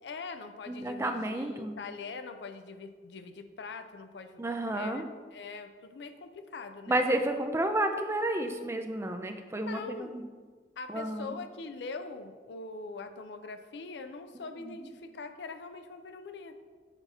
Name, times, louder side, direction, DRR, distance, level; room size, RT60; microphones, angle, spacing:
voice 1, 0.0-7.0 9.6-10.1 10.8-16.6, left 4 dB, 75° left, 8 dB, 0.5 m, -43 dB
voice 2, 0.7-1.7 4.4-5.0 6.9-10.2 10.9-11.4 14.6-14.9, right 1 dB, 15° right, 6 dB, 0.4 m, -31 dB
7.0 x 2.8 x 5.3 m, 1.5 s
head